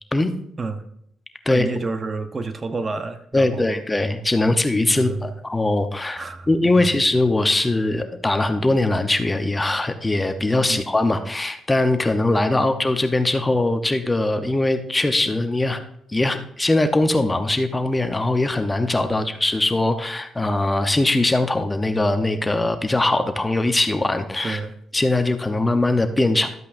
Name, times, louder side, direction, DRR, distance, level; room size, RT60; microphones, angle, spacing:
voice 1, 1.5-3.8 4.9-5.3 6.2-6.5 6.8-6.9 10.7-10.8 12.6-12.7 19.2-19.3 24.4-24.7, right 3 dB, 35° right, 9 dB, 0.8 m, -29 dB
voice 2, 3.3-15.8 16.1-24.6 24.9-26.5, left 2 dB, 15° left, 7 dB, 0.8 m, -21 dB
12.5 x 8.2 x 2.6 m, 0.74 s
cardioid pair, 90°, 0 cm